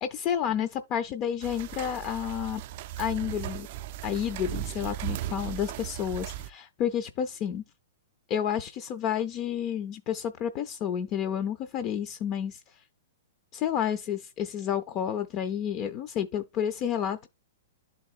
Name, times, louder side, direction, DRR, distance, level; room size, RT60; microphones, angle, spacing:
voice 1, 0.0-2.6 3.0-3.7 4.0-7.6 8.3-12.8 13.5-17.3, left 9 dB, 30° left, 0.4 m, -30 dB
sound 1, 1.4-6.5, right 13 dB, 45° right, 0.3 m, -37 dB
11.5 x 4.0 x 2.5 m
hypercardioid pair, 160°, 0 cm